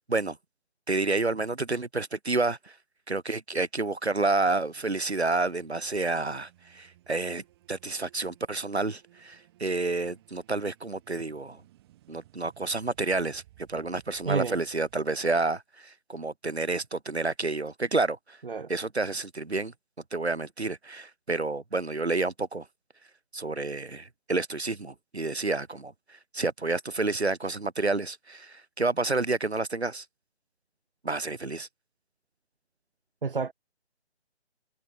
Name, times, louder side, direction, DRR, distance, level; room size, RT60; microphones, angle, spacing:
voice 1, 0.9-2.8 3.1-11.6 12.1-18.4 18.7-19.7 20.1-22.7 23.3-30.1 31.0-31.7, right 3 dB, 70° right, 3.9 m, -29 dB
sound 1, 4.1-15.5, right 15 dB, 20° right, 8.0 m, -60 dB
voice 2, 14.3-14.6 18.5-18.7 33.2-33.5, right 5 dB, 50° right, 2.3 m, -29 dB
figure-of-eight pair, 150°, 34 cm